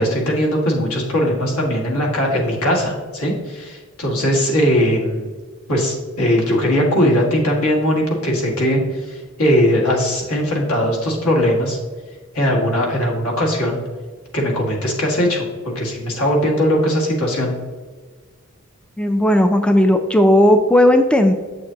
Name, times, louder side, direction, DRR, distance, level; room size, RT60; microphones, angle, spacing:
voice 1, 0.0-5.3 5.7-11.8 12.3-13.8 14.3-17.5, equal, 80° left, -1 dB, 1.9 m, -19 dB
voice 2, 19.0-21.3, left 1 dB, 5° left, 6 dB, 0.3 m, -14 dB
8.0 x 6.5 x 2.9 m, 1.5 s
head